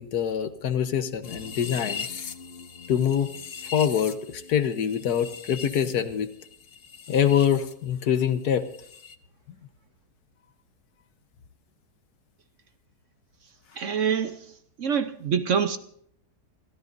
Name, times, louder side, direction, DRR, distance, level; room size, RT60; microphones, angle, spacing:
voice 1, 0.0-2.1 2.9-3.3 3.7-6.3 7.1-8.6, left 8 dB, 70° left, 1.5 m, -24 dB
sound 1, 1.2-7.7 8.0-9.2, left 6 dB, 50° left, 0.8 m, -40 dB
voice 2, 13.8-14.5 14.8-15.8, right 7 dB, 55° right, 1.0 m, -25 dB
27.0 x 13.5 x 2.6 m
omnidirectional pair, 1.8 m